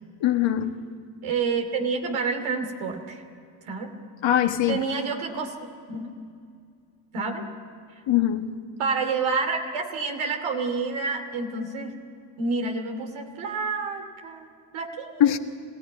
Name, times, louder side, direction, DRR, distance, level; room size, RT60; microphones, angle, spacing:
voice 1, 0.2-0.8 4.2-4.8 8.1-8.5 15.2-15.4, left 11 dB, 65° left, 6 dB, 1.6 m, -21 dB
voice 2, 1.2-3.2 3.7-3.9 4.7-5.5 5.9-6.2 7.1-7.5 7.9-8.0 8.8-12.0 12.4-15.4, right 4 dB, 75° right, 4 dB, 2.7 m, -29 dB
27.0 x 17.5 x 9.2 m, 2.3 s
hypercardioid pair, 40°, 49 cm